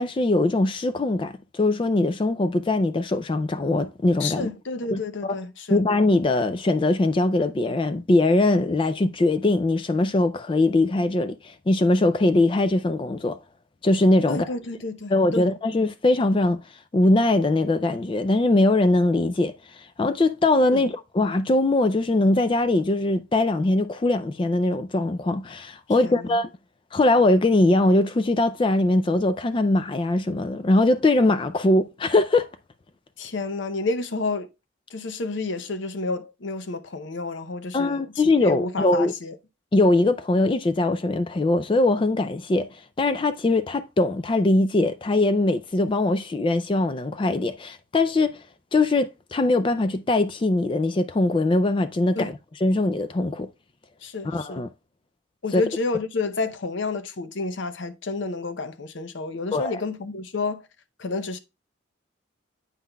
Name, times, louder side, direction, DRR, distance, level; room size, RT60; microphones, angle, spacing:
voice 1, 0.0-4.5 4.9-5.4 5.7-13.4 13.8-14.5 15.1-16.6 16.9-26.5 26.9-32.5 37.7-39.1 39.7-42.7 43.0-48.4 48.7-53.5 54.2-54.7 55.5-55.6 59.5-59.8, left 2 dB, 25° left, 0.3 m, -21 dB
voice 2, 4.2-5.8 14.3-15.5 20.7-20.9 26.0-26.4 33.2-34.5 34.9-38.0 38.4-39.4 52.2-52.3 54.0-54.6 55.4-60.7 61.0-61.4, left 3 dB, 70° left, 0.7 m, -30 dB
8.3 x 5.6 x 2.2 m
head